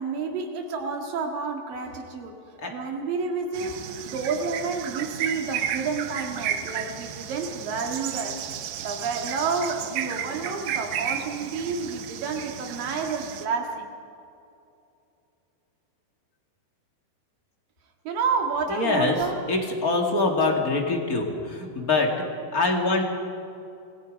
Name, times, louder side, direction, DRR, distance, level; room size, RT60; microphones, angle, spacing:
voice 1, 0.0-2.4 2.7-8.4 8.8-13.9 18.0-19.5, right 4 dB, 65° right, 3 dB, 3.4 m, -30 dB
sound 1, 3.5-13.5, right 9 dB, 85° right, 1.5 m, -33 dB
voice 2, 18.7-19.2 19.5-22.1 22.5-23.0, left 3 dB, 30° left, 2 dB, 1.8 m, -24 dB
27.0 x 20.0 x 5.2 m, 2.6 s
omnidirectional pair, 4.6 m